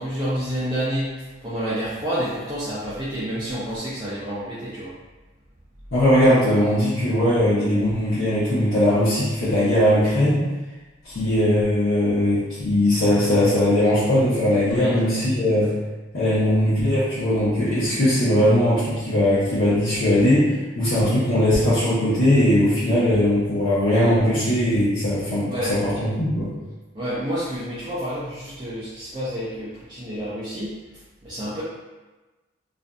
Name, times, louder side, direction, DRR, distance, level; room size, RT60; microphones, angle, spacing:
voice 1, 0.0-4.9 14.7-14.9 25.5-25.7 26.9-30.7 31.2-31.6, equal, 20° right, -11 dB, 0.5 m, -29 dB
voice 2, 5.9-10.5 11.0-15.7 16.1-26.5, left 1 dB, 70° left, -13 dB, 0.8 m, -20 dB
2.5 x 2.5 x 2.2 m, 1.2 s
head